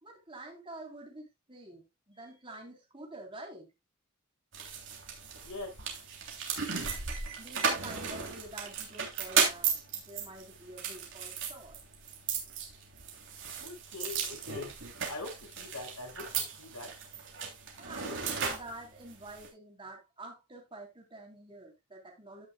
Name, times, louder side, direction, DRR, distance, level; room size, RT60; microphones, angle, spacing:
voice 1, 0.0-3.7 7.4-11.8 17.8-22.5, right 2 dB, 25° right, 3.6 m, -48 dB
sound 1, 4.5-19.5, right 6 dB, 55° right, 3.1 m, -35 dB
voice 2, 5.4-5.8 13.5-16.3 16.6-16.9 18.0-18.2, left 2 dB, 90° left, 5.9 m, -43 dB
15.5 x 6.5 x 2.3 m
head